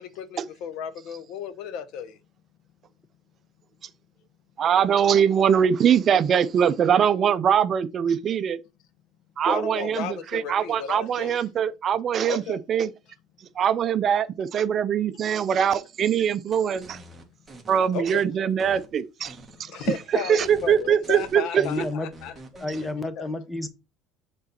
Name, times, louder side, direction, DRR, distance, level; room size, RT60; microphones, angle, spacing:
voice 1, 0.0-2.2 9.4-11.4 12.3-12.6 17.9-18.3 19.5-22.3 23.2-23.3, left 7 dB, 70° left, 0.8 m, -34 dB
voice 2, 4.6-8.6 9.4-12.9 13.6-17.0 17.7-19.7 20.3-21.6, right 8 dB, 40° right, 0.5 m, -22 dB
sound 1, 16.5-18.2 18.6-19.6 19.8-20.0 20.4-22.9, right 1 dB, 10° right, 1.4 m, -47 dB
voice 3, 21.6-22.1 22.6-23.7, left 2 dB, 10° left, 0.9 m, -30 dB
6.6 x 4.0 x 4.1 m
cardioid pair, 135°, 0 cm